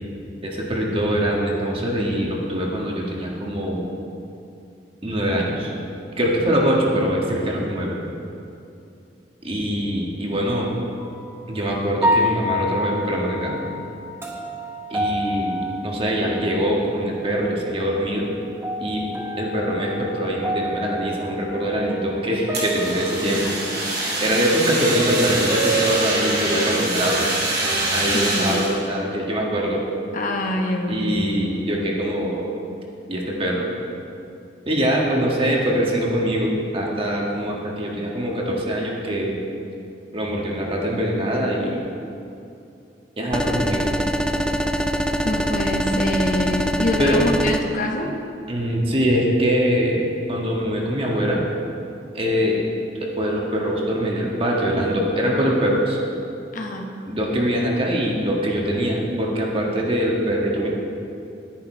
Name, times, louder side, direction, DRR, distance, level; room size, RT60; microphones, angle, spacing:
voice 1, 0.4-3.9 5.0-5.7 6.2-8.0 9.4-10.7 11.5-13.5 14.9-18.3 18.8-19.0 19.4-23.5 24.2-27.2 27.9-29.8 30.9-32.5 33.1-33.6 34.6-39.4 40.1-41.8 43.2-43.9 47.0-47.2 48.5-50.0 50.3-51.4 52.1-52.6 53.2-56.0 57.1-60.7, equal, 30° right, -2 dB, 1.7 m, -23 dB
sound 1, 11.0-11.4 12.0-16.8 17.2-18.0 18.4-28.1, equal, 15° right, 1.1 m, -29 dB
Fire, 22.5-28.7, right 2 dB, 60° right, 2.7 m, -25 dB
voice 2, 28.1-28.7 30.1-31.5 45.2-48.1 56.5-56.9, left 1 dB, 50° left, 2 dB, 1.0 m, -25 dB
sound 2, 43.3-47.6, equal, 5° left, 0.4 m, -23 dB
10.5 x 10.5 x 4.5 m, 2.6 s
head